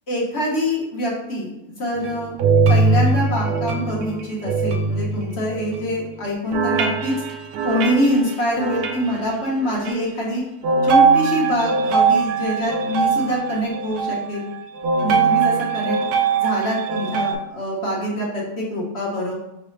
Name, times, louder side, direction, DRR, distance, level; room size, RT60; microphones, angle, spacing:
voice 1, 0.1-2.3 2.7-7.1 7.6-10.4 10.8-14.5 15.0-16.0 16.3-19.3, equal, 45° left, -3 dB, 1.2 m, -24 dB
sound 1, 2.0-5.9 6.5-9.1 9.6-9.9 10.6-17.3, right 5 dB, 90° right, 1.2 m, -21 dB
5.1 x 3.3 x 3.1 m, 0.94 s
omnidirectional pair, 1.7 m